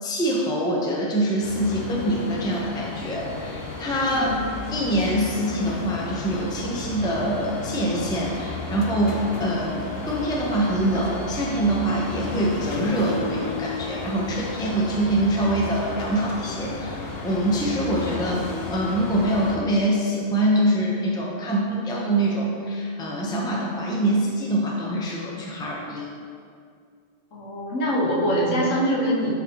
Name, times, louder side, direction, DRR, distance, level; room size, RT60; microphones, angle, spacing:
voice 1, 0.0-4.4 4.7-26.1, right 1 dB, 5° left, -3 dB, 0.5 m, -24 dB
sound 1, 1.4-19.6, left 3 dB, 60° left, 0.8 m, -33 dB
voice 2, 4.1-4.5 27.3-29.3, equal, 80° left, -4 dB, 1.5 m, -24 dB
8.7 x 4.1 x 2.9 m, 2.2 s
omnidirectional pair, 1.3 m